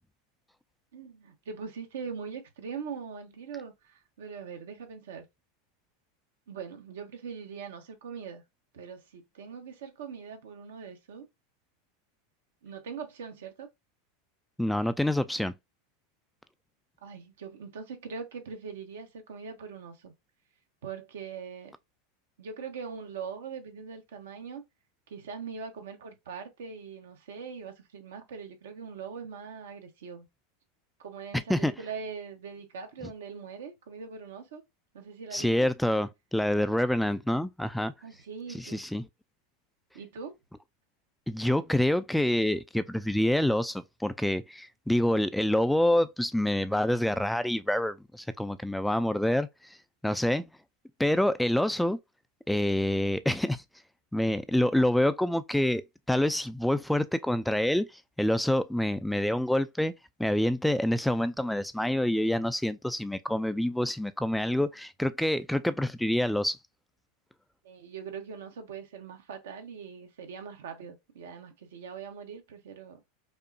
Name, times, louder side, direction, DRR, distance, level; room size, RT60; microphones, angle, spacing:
voice 1, 0.9-5.2 6.5-8.4 8.7-11.3 12.6-13.7 17.0-20.1 20.8-21.7 22.4-24.6 25.1-30.3 31.0-34.6 34.9-35.7 38.0-38.8 39.9-40.3 67.6-73.0, right 6 dB, 75° right, 0.9 m, -41 dB
voice 2, 14.6-15.5 31.5-31.7 35.3-37.9 38.5-39.1 41.3-49.8 50.0-50.4 51.0-52.0 52.5-53.6 54.1-55.8 56.1-59.9 60.2-66.6, left 1 dB, 5° left, 0.3 m, -27 dB
5.3 x 2.1 x 2.6 m
hypercardioid pair, 95°, 0 cm